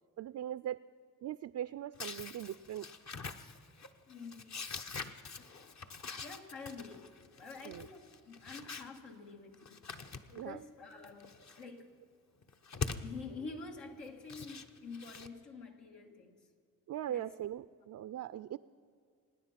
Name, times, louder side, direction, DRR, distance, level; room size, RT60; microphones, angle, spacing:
voice 1, 0.2-0.8 1.2-2.9 7.6-7.9 10.4-10.6 16.9-18.6, right 11 dB, 50° right, 14 dB, 0.4 m, -40 dB
sound 1, 1.9-9.0 9.5-10.5 10.9-11.6 12.4-13.1 14.1-15.3, left 5 dB, 45° left, 1.0 m, -44 dB
voice 2, 4.1-4.5 5.4-5.5 6.2-7.1 7.4-9.8 10.1-11.9 12.9-16.4 17.1-17.2, left 4 dB, 80° left, 1 dB, 1.9 m, -48 dB
25.5 x 9.8 x 5.8 m, 2.1 s
supercardioid pair, 55°, 38 cm